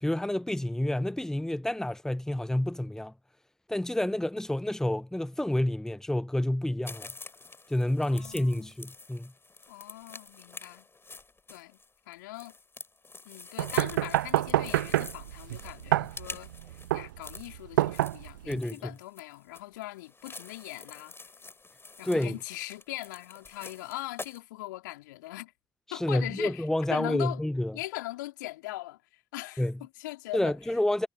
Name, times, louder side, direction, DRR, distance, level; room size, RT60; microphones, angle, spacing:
voice 1, 0.0-3.1 3.7-7.1 7.7-9.3 18.5-18.8 22.0-22.3 25.9-27.8 29.6-29.7 30.3-31.1, left 1 dB, 5° left, 1.0 m, -29 dB
sound 1, 6.8-24.4, left 3 dB, 20° left, 6.2 m, -47 dB
voice 2, 8.0-8.7 9.7-10.9 11.5-11.8 12.1-12.5 13.2-16.5 16.9-21.2 22.0-25.5 25.9-27.4 27.7-30.8, left 18 dB, 75° left, 4.0 m, -40 dB
sound 2, 13.6-18.6, right 15 dB, 75° right, 0.6 m, -28 dB
figure-of-eight pair, 50°, 10 cm